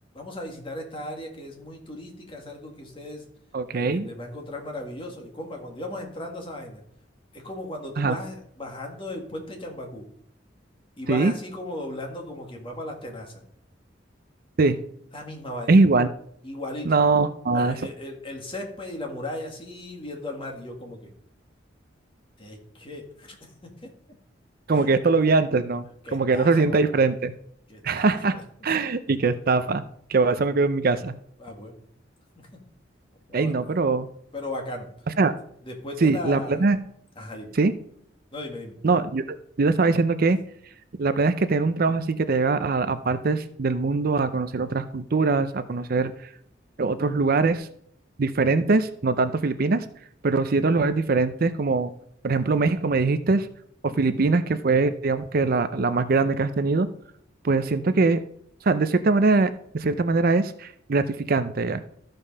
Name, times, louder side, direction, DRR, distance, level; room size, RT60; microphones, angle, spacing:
voice 1, 0.1-3.2 3.7-6.8 7.3-10.1 11.0-13.4 15.1-15.8 16.4-17.0 17.5-21.1 22.4-23.9 24.7-24.9 25.2-25.3 26.0-26.9 27.7-28.7 31.4-31.8 32.4-32.6 33.3-33.8 34.3-35.1 35.6-36.7 37.2-37.6 38.3-38.8 53.9-54.2, left 1 dB, 30° left, 1 dB, 2.1 m, -37 dB
voice 2, 3.5-4.1 8.0-8.2 11.1-11.3 14.6-14.8 15.7-16.1 16.9-17.8 24.7-27.3 27.8-28.3 28.6-29.8 30.1-31.1 33.3-34.1 35.2-35.3 36.0-36.8 37.6-37.7 38.8-39.2 39.6-40.4 41.0-46.1 46.8-47.7 48.2-49.8 50.2-51.9 52.2-53.5 53.8-56.9 57.4-58.2 58.6-61.8, right 3 dB, 50° right, 12 dB, 0.5 m, -22 dB
13.5 x 5.3 x 5.4 m, 0.68 s
head